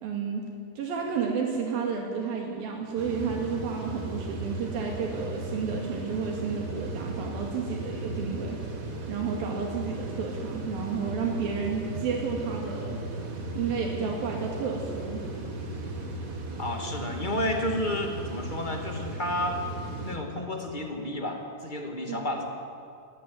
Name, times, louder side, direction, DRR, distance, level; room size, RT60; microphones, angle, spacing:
voice 1, 0.0-0.5 0.8-8.6 9.1-13.0 13.6-15.3 22.1-22.2, right 5 dB, 80° right, 0 dB, 4.0 m, -31 dB
sound 1, 3.0-20.2, right 2 dB, 30° right, 1.7 m, -36 dB
voice 2, 16.6-19.6 20.0-22.5, left 1 dB, 15° left, 3 dB, 1.7 m, -31 dB
20.5 x 16.5 x 9.8 m, 2.4 s
omnidirectional pair, 4.1 m